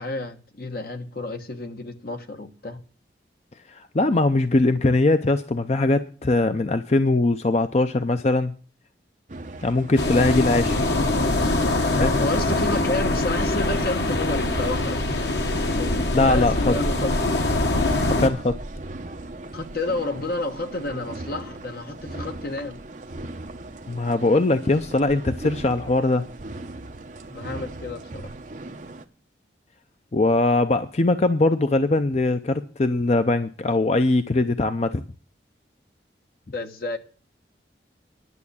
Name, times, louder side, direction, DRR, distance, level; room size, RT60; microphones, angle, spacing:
voice 1, 0.0-2.8 11.5-11.9 12.2-17.2 19.5-22.8 27.3-28.3 36.5-37.0, left 2 dB, 55° left, 1.3 m, -31 dB
voice 2, 3.7-8.5 9.6-10.9 12.0-12.2 16.1-16.7 18.1-18.6 23.9-26.2 30.1-35.0, left 2 dB, 40° left, 0.5 m, -21 dB
sound 1, 9.3-29.0, right 2 dB, 45° right, 0.9 m, -38 dB
sound 2, 10.0-18.3, left 2 dB, 75° left, 1.4 m, -23 dB
11.0 x 7.0 x 8.4 m
head